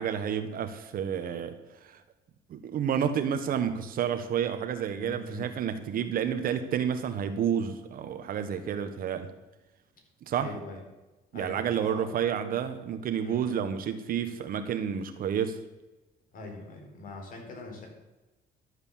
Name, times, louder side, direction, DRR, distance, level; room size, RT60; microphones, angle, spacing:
voice 1, 0.0-2.0 2.5-9.3 10.3-10.5 11.3-15.6, right 8 dB, 60° right, 9 dB, 1.1 m, -30 dB
voice 2, 5.0-5.5 10.3-10.8 11.3-12.1 13.2-13.6 16.3-17.9, left 3 dB, 55° left, 2 dB, 4.3 m, -42 dB
13.0 x 7.9 x 7.2 m, 1.1 s
cardioid pair, 110°, 17 cm